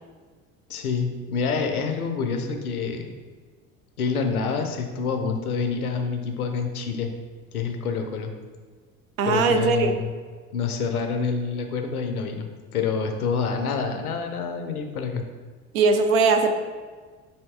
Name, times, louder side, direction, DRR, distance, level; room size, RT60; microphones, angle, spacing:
voice 1, 0.7-3.1 4.0-7.1 7.5-8.3 9.2-10.1 10.5-15.2, left 5 dB, 85° left, 5 dB, 0.5 m, -27 dB
voice 2, 9.2-9.9 15.7-16.6, right 4 dB, 70° right, 6 dB, 0.6 m, -20 dB
4.3 x 2.7 x 3.4 m, 1.5 s
figure-of-eight pair, 65°, 43 cm